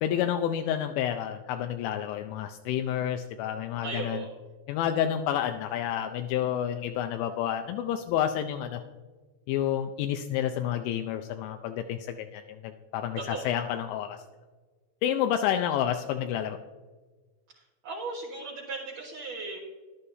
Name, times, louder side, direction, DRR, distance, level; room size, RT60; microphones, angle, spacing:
voice 1, 0.0-4.2 4.7-8.8 9.5-14.2 15.0-16.6, left 10 dB, 85° left, 6 dB, 2.9 m, -29 dB
voice 2, 3.8-4.3 13.2-13.5 17.8-19.6, right 3 dB, 60° right, -5 dB, 2.6 m, -36 dB
12.5 x 11.5 x 2.7 m, 1.3 s
omnidirectional pair, 5.2 m